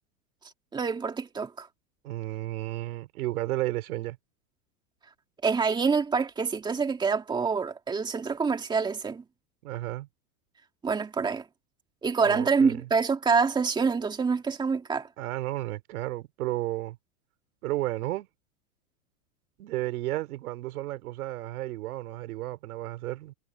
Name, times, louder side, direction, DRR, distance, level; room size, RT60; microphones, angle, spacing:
voice 1, 0.7-1.7 5.4-9.2 10.8-11.5 12.0-15.1, right 5 dB, 10° right, 2.3 m, -26 dB
voice 2, 2.0-4.2 9.6-10.1 12.2-12.9 15.2-17.0 17.6-18.3 19.6-23.3, right 16 dB, 70° right, 3.1 m, -33 dB
supercardioid pair, 160°, 46 cm